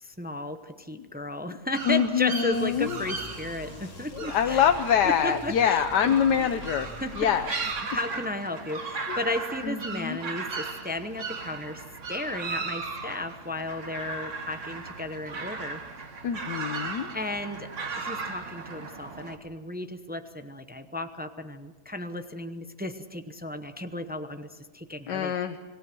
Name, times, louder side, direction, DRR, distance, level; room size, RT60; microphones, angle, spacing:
voice 1, 0.0-4.6 5.0-6.5 7.0-7.3 7.9-15.8 17.1-17.7 18.0-25.3, left 2 dB, 10° right, 8 dB, 0.6 m, -34 dB
sound 1, 1.7-19.4, right 4 dB, 50° right, 1.8 m, -37 dB
voice 2, 1.8-3.0 3.7-3.8 4.1-6.9 7.1-7.5 9.1-9.2 9.6-10.2 16.2-17.1 25.1-25.6, left 8 dB, 85° left, 7 dB, 1.4 m, -25 dB
sound 2, 2.5-7.8, left 2 dB, 60° left, 2.5 m, -45 dB
27.5 x 18.0 x 6.1 m, 1.3 s
omnidirectional pair, 1.8 m